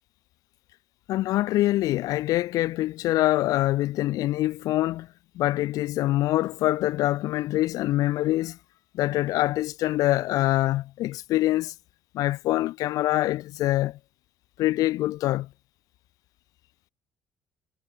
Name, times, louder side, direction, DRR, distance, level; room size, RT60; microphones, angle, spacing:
voice 1, 1.1-5.1 5.3-8.6 8.9-11.7 12.1-14.0 14.6-15.5, left 16 dB, 75° left, 3.0 m, -25 dB
cardioid pair, 140°, 6 cm